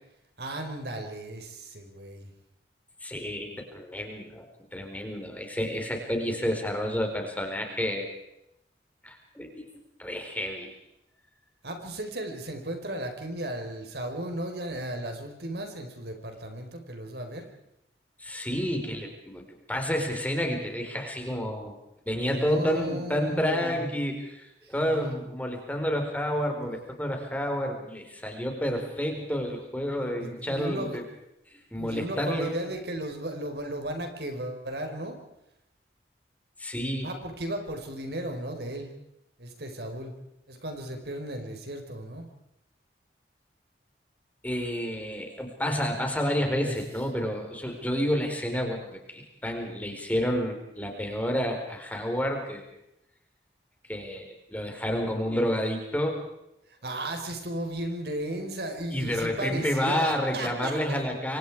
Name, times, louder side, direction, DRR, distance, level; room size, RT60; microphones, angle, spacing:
voice 1, 0.4-2.3 11.6-17.5 22.2-23.8 24.6-25.2 30.2-31.0 31.7-35.2 37.0-38.9 39.4-40.1 40.5-42.3 46.6-46.8 48.6-48.8 56.7-61.0, right 1 dB, 65° right, 4 dB, 4.6 m, -35 dB
voice 2, 3.0-4.5 4.7-8.1 9.0-10.7 18.2-21.7 22.1-31.0 31.5-32.6 36.6-37.1 44.4-52.6 53.9-56.2 58.9-61.4, equal, 10° left, 2 dB, 4.5 m, -30 dB
28.0 x 25.0 x 4.9 m, 0.82 s
head